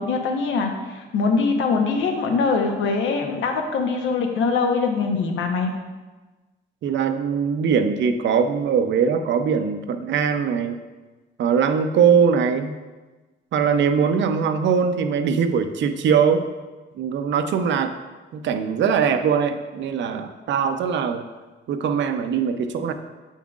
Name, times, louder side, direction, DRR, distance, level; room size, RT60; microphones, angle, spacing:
voice 1, 0.0-5.7, left 4 dB, 80° left, 3 dB, 0.9 m, -23 dB
voice 2, 6.8-10.8 11.4-12.8 13.5-16.4 16.9-17.9 18.3-21.2 21.7-22.9, right 6 dB, 65° right, 8 dB, 0.6 m, -21 dB
8.2 x 5.5 x 2.4 m, 1.2 s
cardioid pair, 90°, 20 cm